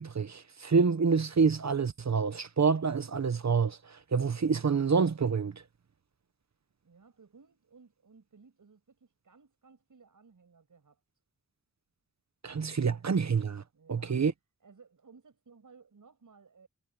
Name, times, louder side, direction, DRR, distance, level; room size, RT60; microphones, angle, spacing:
voice 1, 0.0-3.8 4.1-5.5 12.4-13.6 13.9-14.3, right 5 dB, 55° right, 1.1 m, -27 dB
voice 2, 6.8-11.0 13.7-14.2 14.6-16.7, right 5 dB, 75° right, 6.8 m, -58 dB
cardioid pair, 55°, 32 cm